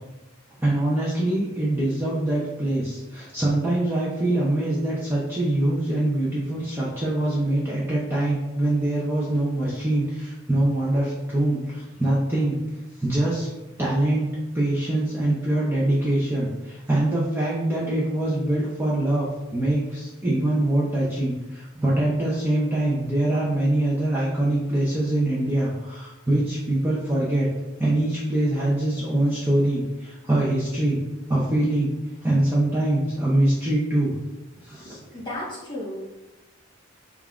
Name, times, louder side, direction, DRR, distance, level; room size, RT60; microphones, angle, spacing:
voice 1, 0.6-12.6 13.0-13.5 13.8-27.5 27.8-31.0 31.3-31.9 32.2-34.1 34.7-35.0, right 1 dB, 10° right, -7 dB, 0.5 m, -24 dB
voice 2, 34.8-36.0, left 1 dB, 20° left, -6 dB, 1.3 m, -34 dB
5.2 x 2.3 x 2.4 m, 1.1 s
head